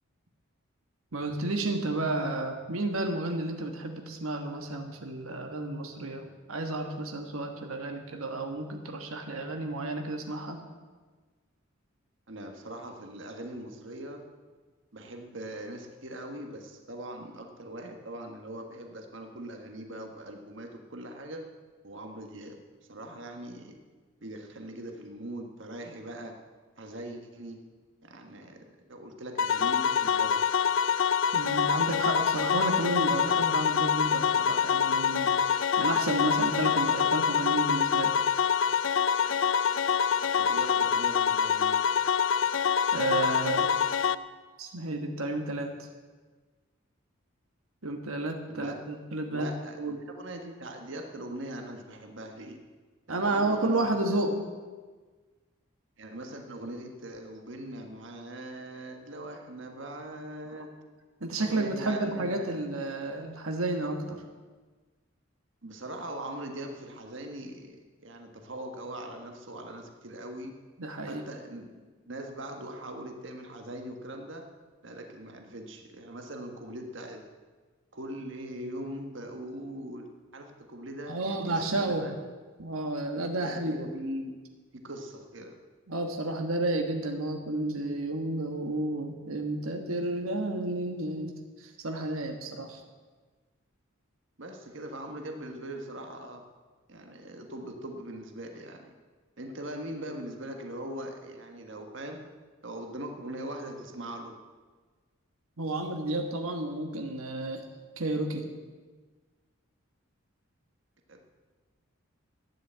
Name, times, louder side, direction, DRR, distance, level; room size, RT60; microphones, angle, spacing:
voice 1, 1.1-10.6 31.3-38.2 42.9-43.7 44.6-45.7 47.8-49.5 49.8-50.0 53.1-54.4 60.5-60.6 61.2-64.2 70.8-71.2 81.1-82.1 82.6-83.8 85.9-92.8 105.6-107.6 108.0-108.5, right 2 dB, 85° right, 4 dB, 1.4 m, -31 dB
voice 2, 12.3-14.2 14.9-21.4 21.8-22.6 22.9-23.8 24.2-26.3 26.8-27.6 28.0-30.4 40.4-41.8 48.5-48.8 49.3-52.6 53.1-53.8 54.1-54.3 56.0-60.7 61.4-62.6 65.6-70.5 71.0-74.4 74.8-77.2 77.9-82.2 83.4-85.5 94.4-96.4 96.9-98.9 99.4-102.2 102.6-104.4 111.1-111.3, right 1 dB, 60° right, 4 dB, 1.5 m, -41 dB
sound 1, 29.4-44.1, left 7 dB, 65° left, 0.4 m, -26 dB
12.5 x 10.0 x 8.0 m, 1.4 s
head